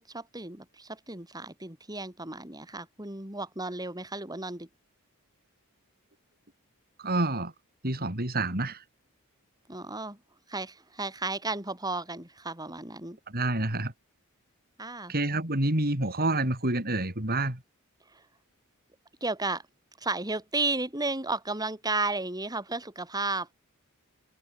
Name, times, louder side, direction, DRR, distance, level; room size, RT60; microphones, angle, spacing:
voice 1, 0.0-4.7 9.7-10.2 10.5-13.2 14.8-15.1 18.1-18.2 19.2-19.6 20.0-23.5, right 3 dB, 15° right, 5.4 m, -33 dB
voice 2, 7.0-7.5 7.8-8.8 13.3-13.9 15.1-17.6, right 2 dB, 45° right, 4.8 m, -28 dB
head